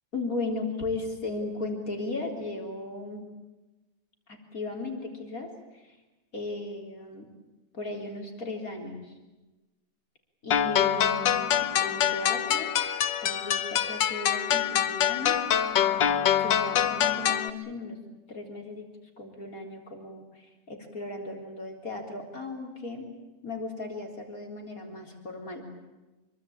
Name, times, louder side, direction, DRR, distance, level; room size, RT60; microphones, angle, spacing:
voice 1, 0.1-3.3 4.3-6.0 6.3-7.3 7.7-9.1 10.4-12.7 13.2-15.4 16.4-18.0 18.3-18.9 19.2-23.1 23.4-25.7, left 2 dB, 50° left, 2 dB, 4.4 m, -36 dB
sound 1, 10.5-17.5, left 9 dB, 90° left, 1.8 m, -25 dB
26.5 x 23.5 x 8.8 m, 1.1 s
omnidirectional pair, 1.9 m